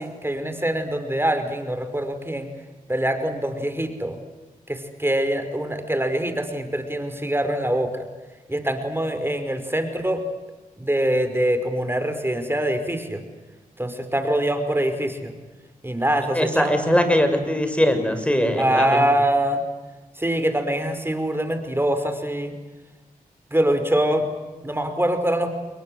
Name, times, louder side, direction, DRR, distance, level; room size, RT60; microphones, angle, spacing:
voice 1, 0.0-2.5 2.9-4.2 4.7-8.1 8.5-10.2 10.8-13.2 13.8-15.3 15.8-17.0 18.6-19.6 20.2-22.5 23.5-24.3 24.6-25.5, right 1 dB, 15° right, 8 dB, 5.3 m, -24 dB
voice 2, 16.3-19.0, equal, 10° left, 7 dB, 6.6 m, -21 dB
29.5 x 22.5 x 8.0 m, 1.2 s
cardioid pair, 50°, 15 cm